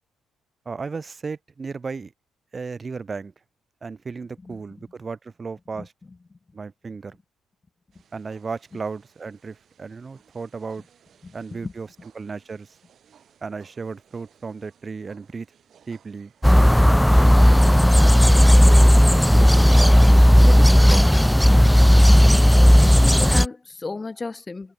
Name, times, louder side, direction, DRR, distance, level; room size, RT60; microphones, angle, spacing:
voice 1, 0.6-2.1 2.5-3.3 3.8-5.9 6.5-7.2 8.1-10.8 11.3-11.9 12.2-12.7 13.4-15.5 15.9-16.3 18.7-18.9 19.3-20.0 20.4-21.1, right 4 dB, 35° right, 2.8 m, -34 dB
voice 2, 4.4-4.9 5.7-6.4 10.8-10.9 11.2-11.7 22.5-24.7, left 3 dB, 30° left, 2.3 m, -35 dB
sound 1, 7.9-19.2, right 8 dB, 55° right, 4.5 m, -57 dB
sound 2, 16.4-23.5, equal, 5° left, 0.4 m, -13 dB
figure-of-eight pair, 45°, 0 cm